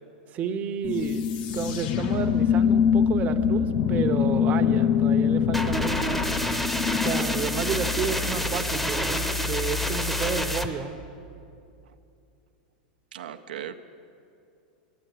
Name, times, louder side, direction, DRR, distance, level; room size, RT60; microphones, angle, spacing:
voice 1, 0.3-6.2 7.0-11.0, right 6 dB, 35° right, 8 dB, 0.7 m, -31 dB
sound 1, 0.8-8.6, left 8 dB, 45° left, 0.4 m, -24 dB
sound 2, 0.9-5.4, left 5 dB, 60° left, 0.8 m, -42 dB
sound 3, 5.5-10.7, left 1 dB, 5° left, 0.7 m, -28 dB
voice 2, 13.1-13.8, right 10 dB, 85° right, 6 dB, 0.5 m, -37 dB
10.5 x 7.4 x 9.2 m, 2.6 s
hypercardioid pair, 115°, 5 cm